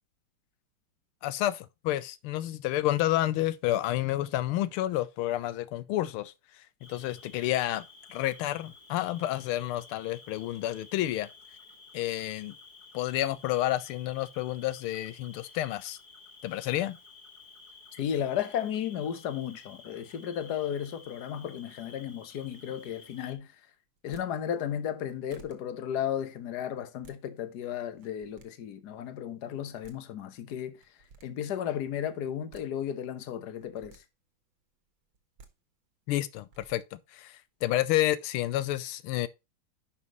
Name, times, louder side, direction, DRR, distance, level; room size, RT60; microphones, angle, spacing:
voice 1, 1.2-6.3 6.9-11.3 11.9-12.5 12.9-16.0 16.4-17.0 36.1-39.3, left 14 dB, 90° left, 1.5 m, -30 dB
Cricket, 6.8-23.4, left 4 dB, 25° left, 2.1 m, -53 dB
voice 2, 17.9-23.5 24.0-30.8 31.2-34.0, left 9 dB, 55° left, 1.5 m, -34 dB
sound 1, 24.0-24.3 24.9-25.0 25.3-25.6 26.8-27.2 27.9-28.5 29.5-29.6 29.8-30.0 30.8-31.3 32.3-32.7 33.5-34.0 35.1-35.5 36.3-36.8, right 4 dB, 65° right, 2.2 m, -54 dB
10.5 x 5.8 x 3.0 m
omnidirectional pair, 2.3 m